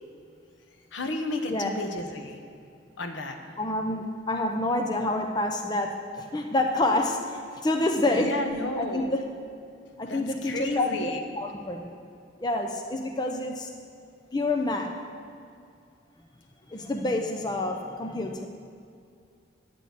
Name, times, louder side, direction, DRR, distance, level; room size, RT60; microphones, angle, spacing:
voice 1, 0.9-2.4 3.0-3.4 8.2-9.1 10.0-11.2, left 2 dB, 70° left, 5 dB, 1.0 m, -32 dB
voice 2, 3.6-8.4 8.8-9.2 10.0-11.1 11.4-12.0 12.4-13.7 14.3-15.0 16.7-18.5, left 2 dB, 20° left, 4 dB, 0.6 m, -28 dB
9.7 x 6.4 x 8.3 m, 2.4 s
head